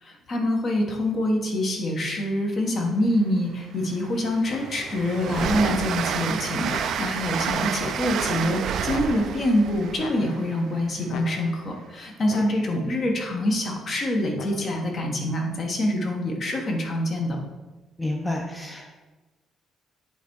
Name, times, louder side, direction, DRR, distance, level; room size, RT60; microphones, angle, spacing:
voice 1, 0.0-17.4, left 1 dB, 40° left, 1 dB, 1.2 m, -25 dB
Train, 3.2-3.3 3.8-11.5, right 7 dB, 60° right, 0.4 m, -30 dB
sound 1, 4.5-5.1 5.6-6.2 6.7-7.3 7.8-8.5 8.9-9.6 10.0-10.7 11.1-11.8 12.3-12.9 14.4-15.0, left 5 dB, 70° left, 0.5 m, -41 dB
voice 2, 18.0-18.9, left 1 dB, 5° left, 0 dB, 0.6 m, -29 dB
8.0 x 3.5 x 4.6 m, 1.2 s
cardioid pair, 150°, 0 cm